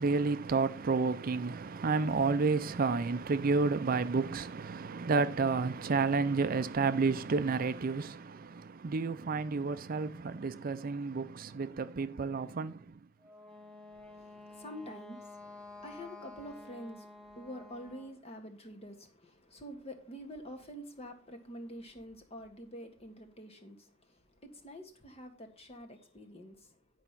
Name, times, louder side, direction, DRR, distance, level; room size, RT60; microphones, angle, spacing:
voice 1, 0.0-12.9, right 4 dB, 45° right, 0.5 m, -31 dB
Wind instrument woodwind instrument, 13.2-18.2, left 2 dB, 5° left, 0.9 m, -51 dB
voice 2, 13.9-26.8, equal, 30° left, 1.6 m, -47 dB
10.0 x 4.9 x 5.8 m
head